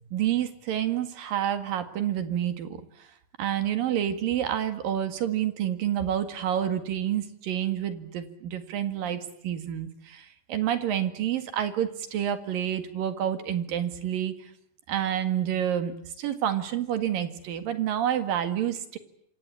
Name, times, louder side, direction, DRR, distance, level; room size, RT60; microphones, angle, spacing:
voice 1, 0.1-3.1 3.4-14.3 14.9-19.0, right 10 dB, 70° right, 9 dB, 3.6 m, -28 dB
26.5 x 26.5 x 8.5 m, 0.69 s
omnidirectional pair, 4.2 m